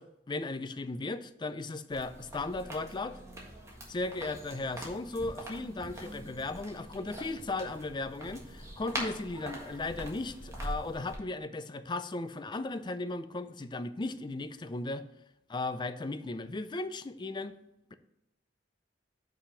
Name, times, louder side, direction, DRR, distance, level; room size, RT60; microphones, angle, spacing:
voice 1, 0.0-3.2 3.9-15.0 15.5-17.5, left 2 dB, 25° left, 11 dB, 0.4 m, -36 dB
sound 1, 1.9-11.2, right 1 dB, 15° right, 1.6 m, -43 dB
5.8 x 5.0 x 5.6 m, 0.88 s
head